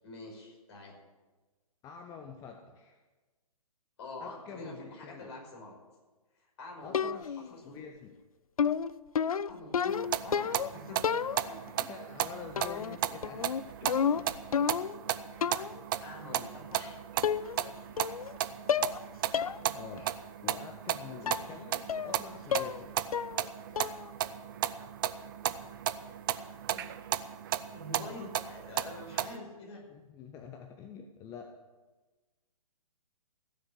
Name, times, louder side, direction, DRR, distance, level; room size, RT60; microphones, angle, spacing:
voice 1, 0.0-0.9 4.0-5.8 6.3-7.8 9.5-11.0 11.4-11.7 16.0-17.0 19.4-20.1 21.1-21.5 23.6-23.7 25.4-25.8 26.4-26.9 27.7-29.8, left 2 dB, 45° left, 0 dB, 5.6 m, -47 dB
voice 2, 1.8-3.0 4.2-5.3 6.8-8.1 11.8-14.3 19.7-20.1 20.4-23.0 29.9-31.6, left 6 dB, 15° left, 5 dB, 0.8 m, -47 dB
sound 1, 6.9-7.5 8.6-10.7 11.0-11.7 12.6-13.0 13.2-15.0 15.4-15.8 16.7-16.8 17.2-17.7 18.0-18.4 18.7-19.0 19.3-19.6 20.0-20.1 21.3-21.5 21.9-22.2 22.5-22.8 23.1-23.5 23.8-24.1, left 7 dB, 70° left, 0.5 m, -31 dB
sound 2, 9.9-29.4, right 11 dB, 35° right, 0.5 m, -35 dB
15.5 x 7.1 x 8.5 m, 1.3 s
figure-of-eight pair, 125°, 19 cm